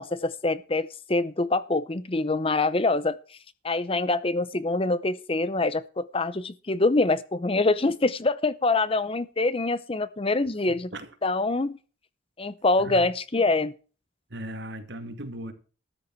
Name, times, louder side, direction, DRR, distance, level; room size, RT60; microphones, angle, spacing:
voice 1, 0.0-3.2 3.6-10.9 11.2-11.8 12.4-13.7, left 2 dB, 30° left, 0.7 m, -25 dB
voice 2, 14.3-15.5, right 1 dB, 60° right, 2.3 m, -37 dB
13.5 x 10.0 x 4.6 m
head